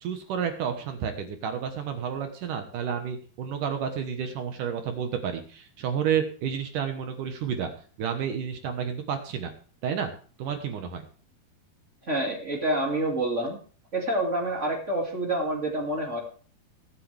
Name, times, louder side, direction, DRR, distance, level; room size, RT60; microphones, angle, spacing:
voice 1, 0.0-7.7 8.0-9.5 9.8-10.1 10.4-11.0, right 7 dB, 65° right, 6 dB, 2.4 m, -30 dB
voice 2, 12.1-13.6 13.9-16.2, right 1 dB, 25° right, 0 dB, 1.9 m, -27 dB
22.0 x 7.7 x 3.4 m, 0.41 s
omnidirectional pair, 4.8 m